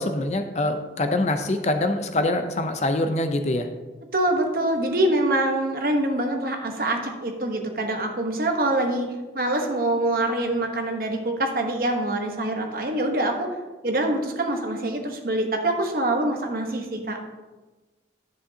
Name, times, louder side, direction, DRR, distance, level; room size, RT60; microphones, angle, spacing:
voice 1, 0.0-3.7, left 2 dB, 40° left, 7 dB, 0.5 m, -24 dB
voice 2, 4.1-9.1 9.3-13.5 13.8-17.2, right 1 dB, 50° right, 3 dB, 1.0 m, -25 dB
10.0 x 7.8 x 2.8 m, 1.2 s
head